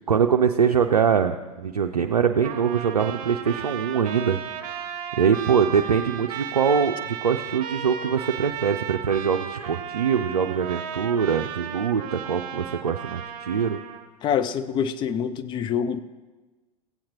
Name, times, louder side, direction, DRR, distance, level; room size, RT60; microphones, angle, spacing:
voice 1, 0.1-4.4 5.2-13.8, right 7 dB, 75° right, 4 dB, 0.5 m, -23 dB
Trumpet, 2.4-14.1, right 9 dB, 40° right, 1.0 m, -35 dB
voice 2, 14.2-16.0, left 8 dB, 25° left, 12 dB, 0.5 m, -25 dB
15.5 x 8.5 x 3.0 m, 1.2 s
figure-of-eight pair, 90°, 19 cm